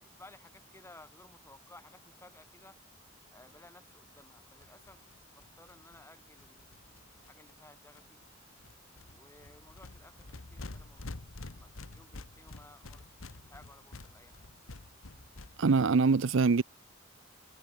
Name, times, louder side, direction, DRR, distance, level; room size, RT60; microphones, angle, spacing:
voice 1, 0.2-2.8 3.3-5.0 5.4-7.0 7.3-8.2 9.1-11.1 11.5-14.5, left 2 dB, 15° left, 7.1 m, -57 dB
sound 1, 3.5-3.6 3.8-3.9 4.1-4.2 4.4-7.6 7.9-8.3 8.6-15.8, left 2 dB, 85° left, 1.3 m, -48 dB
voice 2, 15.6-16.6, right 4 dB, 65° right, 0.6 m, -24 dB
head